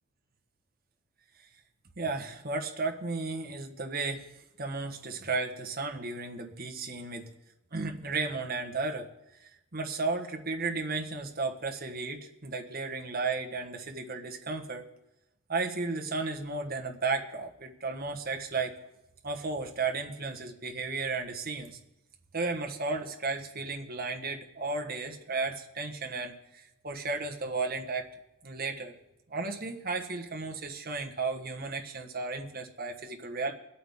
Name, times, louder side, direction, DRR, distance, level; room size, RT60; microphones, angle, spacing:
voice 1, 2.0-4.2 4.6-7.3 7.7-9.1 9.4-14.9 15.5-18.7 19.2-21.8 22.3-28.1 28.4-28.9 29.3-33.5, right 3 dB, 40° right, 3 dB, 1.3 m, -34 dB
23.0 x 8.4 x 3.6 m, 0.90 s
head